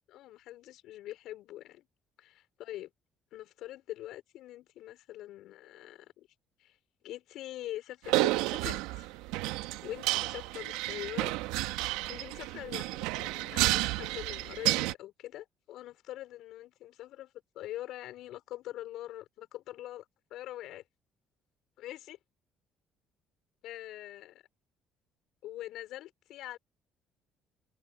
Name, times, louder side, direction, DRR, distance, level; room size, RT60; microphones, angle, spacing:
voice 1, 0.1-1.9 2.2-2.9 3.3-6.3 6.6-6.8 7.0-9.2 9.8-11.3 12.1-20.0 20.3-20.8 21.8-22.2 23.6-24.3 25.4-26.6, left 14 dB, 70° left, 4.8 m, -44 dB
sound 1, 8.1-14.9, right 19 dB, 80° right, 1.5 m, -31 dB
hypercardioid pair, 60°, 0 cm